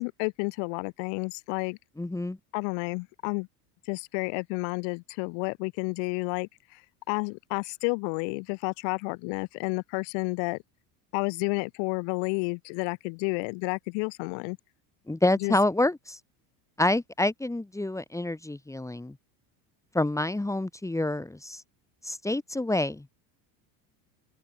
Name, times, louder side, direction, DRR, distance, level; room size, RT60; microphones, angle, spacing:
voice 1, 0.0-1.8 2.5-3.5 3.9-6.8 7.1-10.6 11.1-14.6 15.4-15.6, left 40 dB or more, 70° left, 2.9 m, -31 dB
voice 2, 2.0-2.4 15.1-16.2 16.8-19.1 19.9-21.6 22.0-23.1, left 1 dB, 5° left, 3.9 m, -27 dB
open air
cardioid pair, 135°, 46 cm